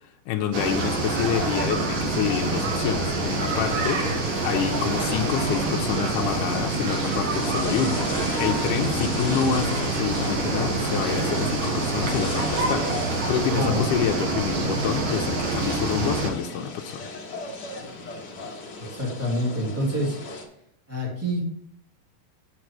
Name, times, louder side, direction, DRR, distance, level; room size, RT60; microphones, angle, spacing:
voice 1, 0.0-17.1, left 8 dB, 75° left, 6 dB, 2.0 m, -28 dB
sound 1, 0.5-16.3, right 3 dB, 50° right, 2.1 m, -26 dB
sound 2, 0.7-20.4, left 2 dB, 50° left, 1.3 m, -37 dB
voice 2, 13.5-13.8 18.8-20.2 20.9-21.4, equal, 5° right, -5 dB, 2.5 m, -27 dB
7.7 x 6.0 x 4.7 m, 0.73 s
omnidirectional pair, 4.2 m